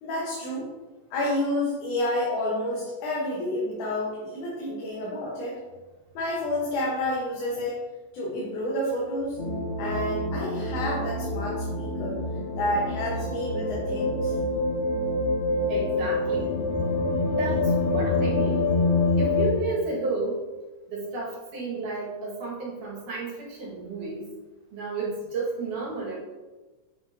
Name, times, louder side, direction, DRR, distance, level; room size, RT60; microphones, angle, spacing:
voice 1, 0.0-0.7 1.1-5.5 6.1-7.7 8.1-9.4 9.8-12.2 12.6-14.3, left 1 dB, 75° left, -5 dB, 2.5 m, -29 dB
sound 1, 9.4-19.5, left 2 dB, 55° left, 1.5 m, -26 dB
voice 2, 15.7-16.6 17.4-18.7 19.2-20.4 20.9-24.2 24.7-26.2, right 3 dB, 90° right, -5 dB, 3.2 m, -32 dB
9.0 x 4.3 x 2.6 m, 1.2 s
omnidirectional pair, 3.5 m